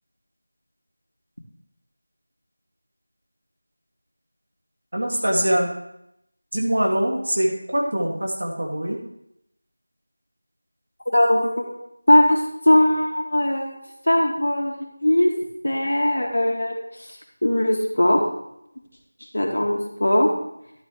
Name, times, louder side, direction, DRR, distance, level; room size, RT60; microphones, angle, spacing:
voice 1, 4.9-5.7 6.5-9.0, right 1 dB, 55° right, -1 dB, 2.4 m, -23 dB
voice 2, 11.1-11.7 12.1-13.8 14.1-15.3 15.6-16.7 17.4-18.2 19.3-20.3, left 1 dB, 80° left, 1 dB, 2.2 m, -19 dB
11.5 x 8.6 x 3.3 m, 0.80 s
figure-of-eight pair, 180°, 0 cm